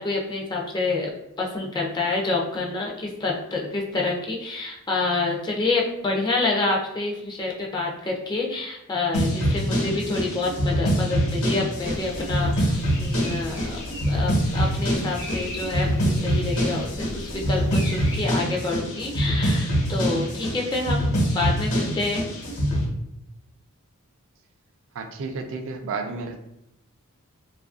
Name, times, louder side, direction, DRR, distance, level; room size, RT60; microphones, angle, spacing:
voice 1, 0.0-13.8 14.1-22.3, left 3 dB, 20° left, -1 dB, 0.3 m, -28 dB
sound 1, 9.1-22.8, equal, 80° left, 1.0 m, -24 dB
sound 2, 11.8-18.2, equal, 60° left, 0.7 m, -38 dB
voice 2, 25.0-26.4, right 4 dB, 65° right, 6 dB, 0.3 m, -32 dB
2.6 x 2.4 x 2.4 m, 0.83 s
head